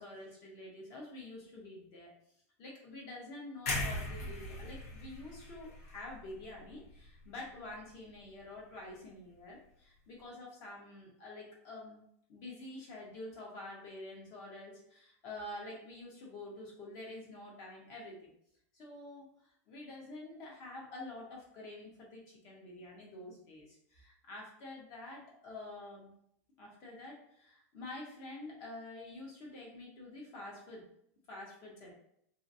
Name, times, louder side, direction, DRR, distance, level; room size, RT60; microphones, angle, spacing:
voice 1, 0.0-2.1 2.6-12.0 12.3-18.2 18.7-26.1 26.6-30.9 31.3-31.9, left 2 dB, 40° left, -2 dB, 1.0 m, -48 dB
sound 1, 3.7-7.7 8.0-8.2, left 1 dB, 75° left, 1.2 m, -40 dB
2.7 x 2.6 x 2.7 m, 0.73 s
supercardioid pair, 160°, 8 cm